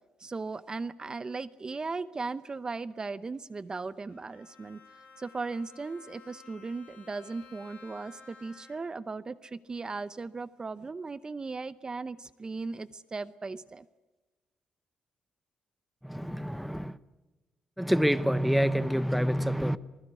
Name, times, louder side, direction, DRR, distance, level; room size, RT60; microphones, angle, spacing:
voice 1, 0.2-4.8 5.2-13.9, right 4 dB, 30° right, 0.7 m, -37 dB
Bowed string instrument, 4.1-9.1, left 5 dB, 55° left, 7.8 m, -54 dB
voice 2, 16.0-17.0 17.8-19.8, equal, ahead, 0.9 m, -27 dB
27.0 x 20.5 x 8.2 m
cardioid pair, 110°, 3 cm